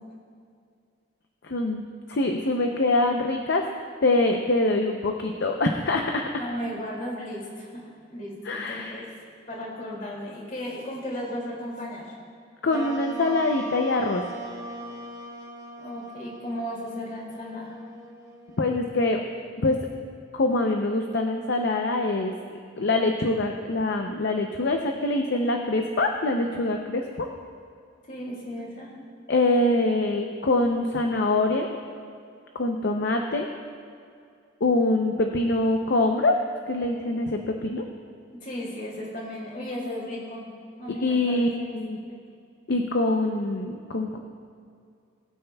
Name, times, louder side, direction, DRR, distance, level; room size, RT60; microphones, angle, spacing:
voice 1, 1.4-1.8 2.1-3.6 4.0-6.3 8.4-9.0 12.6-14.2 18.6-19.2 19.6-19.8 20.3-27.3 29.3-31.7 32.5-33.5 34.6-36.4 36.7-37.8 41.0-42.0 42.7-44.2, left 2 dB, 60° left, 3 dB, 0.6 m, -24 dB
voice 2, 6.3-7.8 8.1-9.0 9.5-12.1 15.8-17.7 28.1-28.9 38.4-40.4 40.8-41.8 42.0-42.2, equal, 45° left, -3 dB, 2.4 m, -35 dB
sound 1, 12.7-19.4, right 2 dB, 20° right, 1.1 m, -40 dB
20.5 x 8.8 x 2.3 m, 2.4 s
head